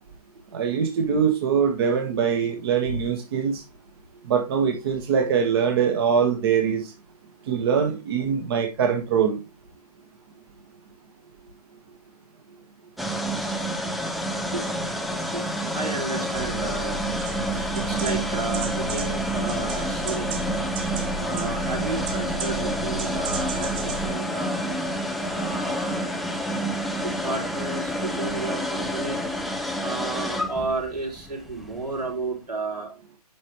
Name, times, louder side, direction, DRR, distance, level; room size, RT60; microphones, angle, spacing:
voice 1, 0.5-3.6 4.3-6.9 7.5-9.4, right 7 dB, 40° right, 1.5 m, -23 dB
sound 1, 13.0-32.1, equal, ahead, 0.4 m, -29 dB
voice 2, 15.7-17.0 17.5-20.4 21.2-24.6 25.3-26.1 27.0-29.2 29.8-32.9, right 3 dB, 90° right, 5.6 m, -32 dB
sound 2, 16.3-24.1, right 3 dB, 20° right, 1.2 m, -34 dB
11.0 x 5.3 x 3.1 m
figure-of-eight pair, 140°, 20 cm